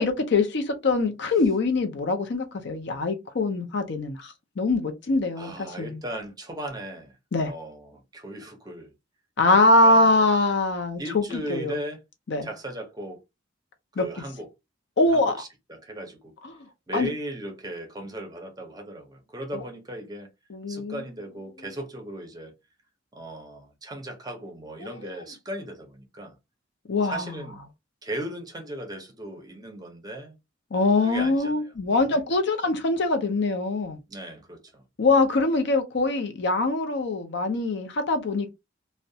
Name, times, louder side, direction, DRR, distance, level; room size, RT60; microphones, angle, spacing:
voice 1, 0.0-6.0 7.3-7.5 9.4-11.2 11.5-11.8 12.3-12.5 14.0-14.1 15.0-15.4 16.4-16.6 16.9-17.1 19.5-19.6 20.5-21.0 24.8-25.1 26.9-27.4 30.7-34.0 35.0-38.5, left 2 dB, 65° left, 0.5 m, -23 dB
voice 2, 5.4-7.1 7.4-8.9 9.5-10.2 11.0-12.0 12.4-13.2 13.9-14.5 15.1-16.3 16.9-20.3 20.7-22.5 23.1-26.3 27.0-27.6 28.0-30.4 31.0-31.7 32.1-32.2 34.1-34.8, right 1 dB, 20° right, 0.6 m, -37 dB
2.4 x 2.1 x 2.7 m
head